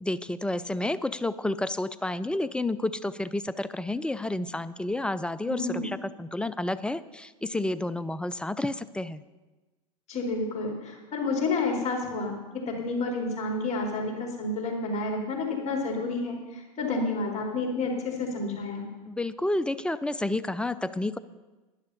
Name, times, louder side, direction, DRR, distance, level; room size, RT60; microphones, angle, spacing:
voice 1, 0.0-9.2 19.1-21.2, left 2 dB, 5° left, 16 dB, 0.4 m, -30 dB
voice 2, 5.4-5.9 10.1-18.9, left 3 dB, 40° left, 0 dB, 3.7 m, -30 dB
11.0 x 10.5 x 5.5 m, 1.2 s
hypercardioid pair, 95°, 18 cm